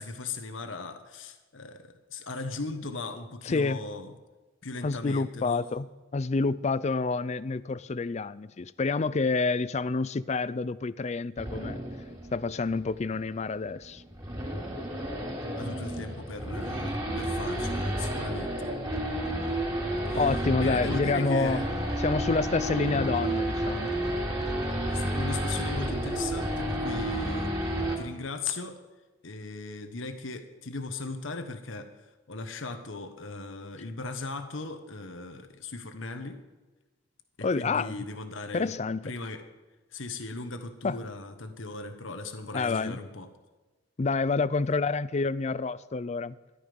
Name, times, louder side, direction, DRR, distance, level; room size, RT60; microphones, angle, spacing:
voice 1, 0.0-4.1 4.6-5.6 15.5-18.7 20.1-20.2 20.6-21.7 24.8-27.5 28.0-28.8 29.2-36.4 37.4-38.7 39.0-39.4 39.9-43.3, left 3 dB, 75° left, 1.3 m, -38 dB
voice 2, 3.5-3.8 4.8-5.9 6.1-11.8 12.3-14.0 20.1-21.6 22.0-23.9 37.4-38.0 38.5-39.0 40.8-41.0 42.5-43.0 44.0-46.4, left 4 dB, 35° left, 0.4 m, -28 dB
Race car auto racing / Idling / Accelerating revving vroom, 11.4-28.0, right 1 dB, 20° right, 3.0 m, -31 dB
14.0 x 11.5 x 5.3 m
head